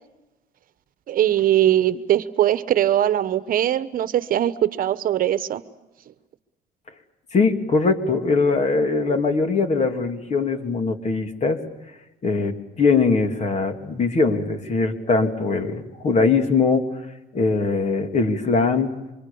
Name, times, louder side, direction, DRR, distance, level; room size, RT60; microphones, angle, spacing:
voice 1, 1.1-5.6, right 12 dB, 55° right, 13 dB, 1.1 m, -21 dB
voice 2, 7.3-11.6 12.2-16.9 17.3-18.9, left 4 dB, 40° left, 6 dB, 2.9 m, -21 dB
28.5 x 25.0 x 7.1 m, 1.0 s
cardioid pair, 110°, 17 cm